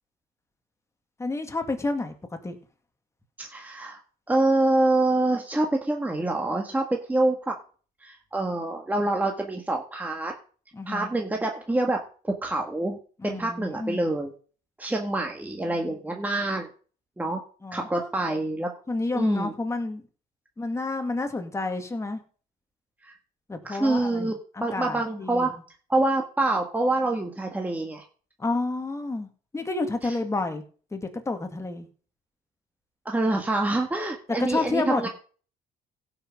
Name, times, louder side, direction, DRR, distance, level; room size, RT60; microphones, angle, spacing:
voice 1, 1.2-2.1 2.4-2.6 10.7-11.1 13.2-14.0 17.6-18.1 18.9-20.0 20.6-22.2 23.5-24.3 24.7-25.5 28.4-29.3 29.5-30.6 30.9-31.9 34.4-35.1, left 3 dB, 15° left, 5 dB, 2.0 m, -29 dB
voice 2, 3.4-4.0 4.3-7.6 8.0-10.3 10.9-12.0 12.2-13.0 13.2-14.3 14.8-16.7 17.2-17.4 17.7-18.7 19.1-19.5 23.0-23.2 23.6-25.6 25.9-28.1 30.0-30.2 33.1-35.1, right 2 dB, 10° right, 1 dB, 1.8 m, -26 dB
16.0 x 5.9 x 5.3 m, 0.40 s
cardioid pair, 110°, 17 cm